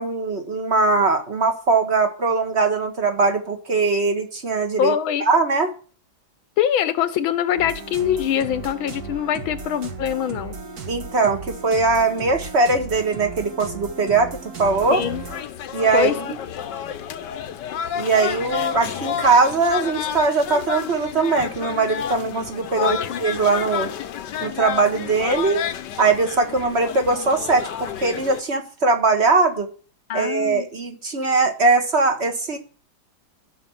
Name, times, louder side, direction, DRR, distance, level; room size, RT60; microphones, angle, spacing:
voice 1, 0.0-4.9 5.2-5.7 10.9-14.3 14.6-15.0 15.7-16.4 18.0-23.9 24.4-25.6 26.0-29.7 30.1-32.6, right 3 dB, 35° right, 5 dB, 1.7 m, -20 dB
voice 2, 4.8-5.3 6.6-10.6 14.9-15.2 15.9-16.1 22.7-23.2 30.1-30.7, left 9 dB, 80° left, 13 dB, 1.7 m, -23 dB
sound 1, 7.6-15.4, right 4 dB, 50° right, 1.9 m, -35 dB
sound 2, 14.6-28.4, left 8 dB, 65° left, 1.4 m, -30 dB
13.5 x 5.8 x 7.1 m, 0.41 s
omnidirectional pair, 2.2 m